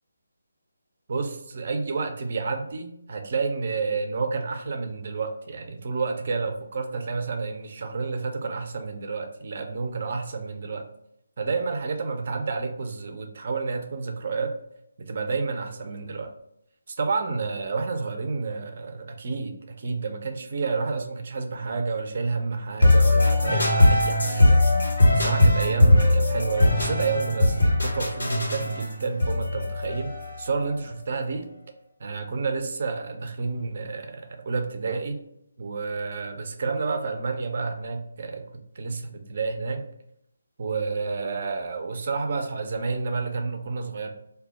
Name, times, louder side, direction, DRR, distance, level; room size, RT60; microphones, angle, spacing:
voice 1, 1.1-10.8 11.4-14.5 15.0-16.3 16.9-24.9 25.1-31.5 32.0-35.2 35.6-39.9 40.6-44.1, right 4 dB, 50° right, 6 dB, 0.4 m, -30 dB
sound 1, 22.8-30.6, left 1 dB, 75° left, 1.2 m, -20 dB
sound 2, 26.8-29.6 29.9-30.0, left 2 dB, 45° left, 0.6 m, -40 dB
2.2 x 2.0 x 3.6 m, 0.77 s
figure-of-eight pair, 155°, 0 cm